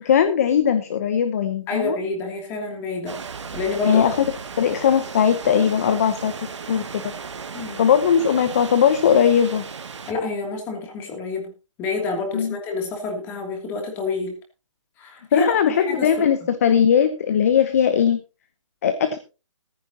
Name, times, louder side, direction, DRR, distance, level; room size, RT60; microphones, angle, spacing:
voice 1, 0.0-2.0 3.8-4.2 4.6-6.3 6.7-7.0 7.8-9.6 12.3-12.6 15.3-18.2 18.8-19.2, left 8 dB, 30° left, 12 dB, 0.9 m, -19 dB
voice 2, 1.7-3.2 3.5-4.1 7.5-7.9 10.1-11.5 11.8-14.3 15.0-16.1, left 3 dB, 10° left, 2 dB, 2.8 m, -28 dB
sound 1, 3.1-10.1, right 5 dB, 60° right, 2.0 m, -36 dB
14.5 x 14.5 x 2.9 m, 0.32 s
hypercardioid pair, 170°, 17 cm